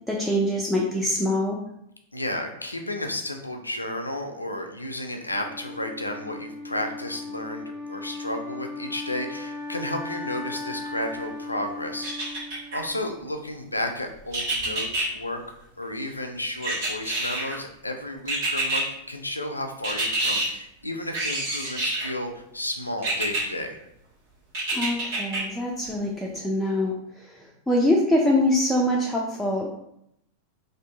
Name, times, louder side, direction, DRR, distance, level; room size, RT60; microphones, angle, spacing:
voice 1, 0.1-1.6 24.7-27.0 27.7-29.7, left 1 dB, 5° left, -3 dB, 0.3 m, -24 dB
voice 2, 2.1-12.5 12.7-15.4 15.8-23.8, left 1 dB, 85° left, 5 dB, 0.3 m, -32 dB
Wind instrument woodwind instrument, 5.3-13.3, left 2 dB, 20° right, 0.9 m, -37 dB
sound 1, 12.0-12.8 14.3-15.1 16.6-17.6 18.3-18.8 19.8-20.5 21.1-22.1 23.0-23.4 24.5-25.4 25.9-26.0, right 2 dB, 50° right, 1.1 m, -27 dB
2.6 x 2.4 x 2.3 m, 0.75 s
figure-of-eight pair, 90°, 0 cm